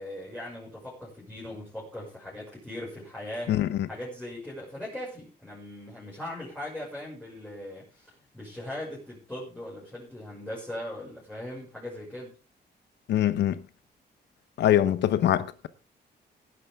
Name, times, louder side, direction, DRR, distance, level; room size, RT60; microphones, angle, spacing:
voice 1, 0.0-3.6 3.9-12.4, left 1 dB, 5° left, 6.3 m, -39 dB
voice 2, 3.5-3.8 13.1-13.6 14.6-15.7, left 11 dB, 85° left, 1.0 m, -23 dB
18.0 x 10.5 x 3.6 m
cardioid pair, 125°, 17 cm